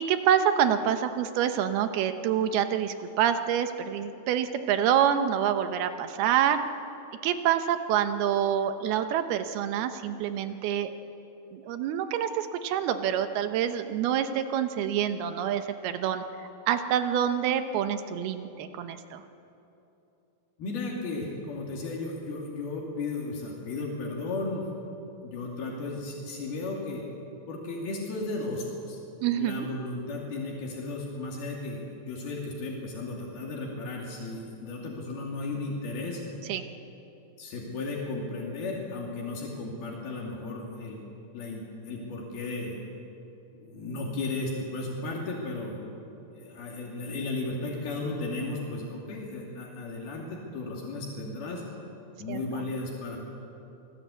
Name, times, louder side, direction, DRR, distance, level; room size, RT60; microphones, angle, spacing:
voice 1, 0.0-6.6 7.2-10.9 11.5-16.2 16.7-19.2 29.2-29.7 36.5-36.6 52.3-52.6, right 9 dB, 85° right, 8 dB, 3.0 m, -27 dB
voice 2, 20.6-24.6 25.2-27.0 27.5-29.0 29.4-36.2 37.4-41.0 41.3-42.8 43.5-45.8 46.3-51.6 52.2-53.2, left 2 dB, 75° left, -2 dB, 4.5 m, -35 dB
27.5 x 18.5 x 8.4 m, 2.9 s
omnidirectional pair, 4.4 m